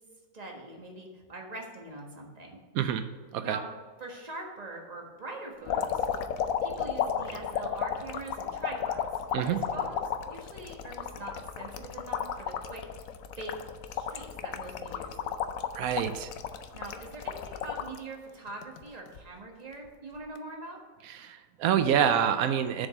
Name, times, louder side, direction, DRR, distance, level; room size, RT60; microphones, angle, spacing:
voice 1, 0.3-2.6 3.4-3.6 4.0-6.1 6.6-9.2 9.5-10.0 10.3-12.8 13.4-13.6 13.9-15.4 16.7-20.8, right 2 dB, 30° right, 0 dB, 1.5 m, -43 dB
sound 1, 5.7-18.0 18.5-19.2 20.2-20.4, left 8 dB, 75° left, 1.0 m, -33 dB
voice 2, 15.7-16.3 21.0-22.9, right 9 dB, 90° right, 9 dB, 1.1 m, -27 dB
7.1 x 5.3 x 7.3 m, 1.5 s
omnidirectional pair, 1.5 m